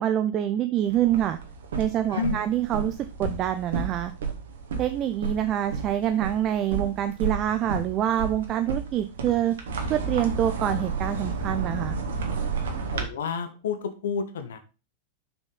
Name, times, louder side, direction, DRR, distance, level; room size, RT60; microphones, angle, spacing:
voice 1, 0.0-1.4 1.8-4.1 4.8-9.5 9.9-12.0, right 11 dB, 35° right, 9 dB, 0.6 m, -26 dB
sound 1, 0.9-13.0, right 4 dB, 60° right, 1.7 m, -32 dB
voice 2, 12.9-14.6, left 6 dB, 60° left, 10 dB, 1.0 m, -30 dB
6.5 x 6.1 x 3.8 m, 0.31 s
figure-of-eight pair, 90°, 0 cm